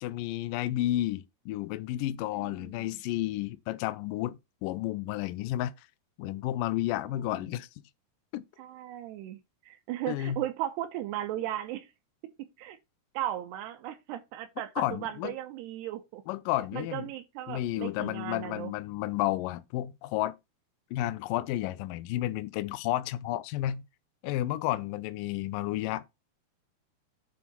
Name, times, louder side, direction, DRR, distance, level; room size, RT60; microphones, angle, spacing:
voice 1, 0.0-5.7 6.2-7.7 8.3-8.4 10.1-10.4 14.8-15.3 16.3-17.1 17.5-20.3 20.9-23.8 24.2-26.0, left 14 dB, 85° left, 1.9 m, -31 dB
voice 2, 2.4-2.9 7.2-7.3 8.6-9.4 9.7-11.9 12.6-12.8 13.1-16.2 16.7-18.7, right 13 dB, 85° right, 2.9 m, -36 dB
9.1 x 3.9 x 6.0 m
omnidirectional pair, 4.7 m